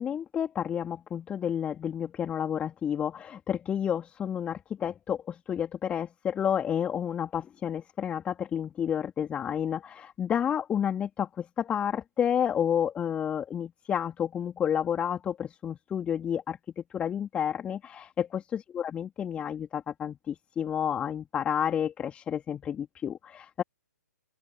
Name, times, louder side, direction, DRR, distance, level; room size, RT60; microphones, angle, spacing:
voice 1, 0.0-23.6, left 8 dB, 10° left, 3.0 m, -30 dB
open air
figure-of-eight pair, 130°, 9 cm